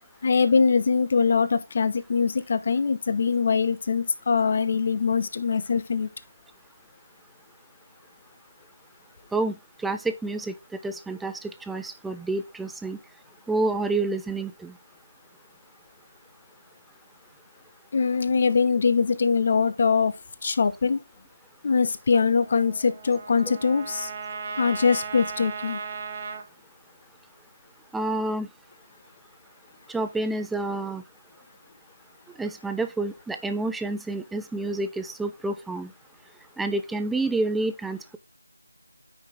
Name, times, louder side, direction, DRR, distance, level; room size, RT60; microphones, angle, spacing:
voice 1, 0.2-6.1 17.9-20.1 20.4-21.0 21.6-24.1 24.6-25.8, left 5 dB, 30° left, 1.0 m, -22 dB
voice 2, 9.3-10.5 10.8-13.0 13.5-14.8 27.9-28.5 29.9-31.0 32.4-35.9 36.6-38.2, right 2 dB, ahead, 0.4 m, -29 dB
Trumpet, 22.1-26.4, right 5 dB, 25° right, 1.3 m, -37 dB
9.2 x 5.9 x 3.6 m
figure-of-eight pair, 170°, 0 cm